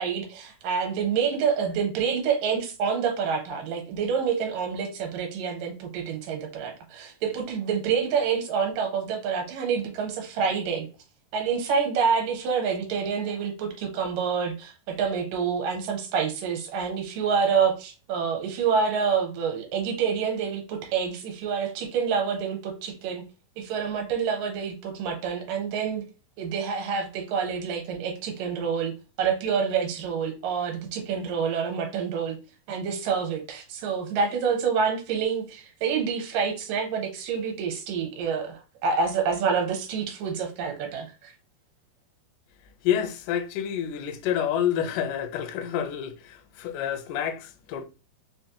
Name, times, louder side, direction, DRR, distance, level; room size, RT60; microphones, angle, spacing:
voice 1, 0.0-10.9 11.3-23.2 23.6-26.1 26.4-32.4 32.7-41.3, right 6 dB, 75° right, 2.4 m, -27 dB
voice 2, 42.8-47.9, left 9 dB, 80° left, 1.9 m, -28 dB
5.7 x 2.1 x 2.8 m
omnidirectional pair, 4.0 m